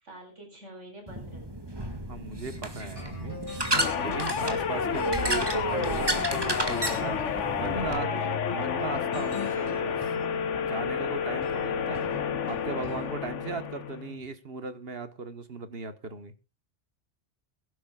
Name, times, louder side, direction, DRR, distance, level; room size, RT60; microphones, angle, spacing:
voice 1, 0.0-1.4 7.6-8.4, right 2 dB, 80° right, 4 dB, 5.1 m, -45 dB
sound 1, 1.1-8.0, right 1 dB, 20° right, 1.9 m, -32 dB
voice 2, 2.1-3.5 4.0-7.2 7.6-8.1 8.5-10.0 10.5-12.0 12.5-16.3, right 4 dB, 55° right, 11 dB, 1.4 m, -37 dB
sound 2, 3.0-14.2, left 2 dB, 25° left, 3.1 m, -43 dB
sound 3, 3.7-14.1, left 7 dB, 85° left, 1.4 m, -30 dB
23.0 x 11.5 x 2.3 m, 0.28 s
omnidirectional pair, 1.2 m